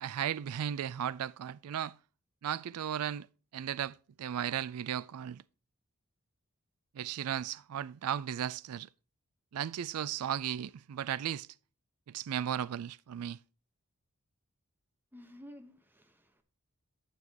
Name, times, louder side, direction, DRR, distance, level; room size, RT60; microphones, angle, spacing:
voice 1, 0.0-2.0 2.4-3.3 3.5-5.4 6.9-8.9 9.5-11.5 12.1-13.4, right 9 dB, 90° right, 0.4 m, -35 dB
voice 2, 15.1-16.4, equal, 10° right, 1.0 m, -52 dB
9.5 x 8.0 x 2.9 m
head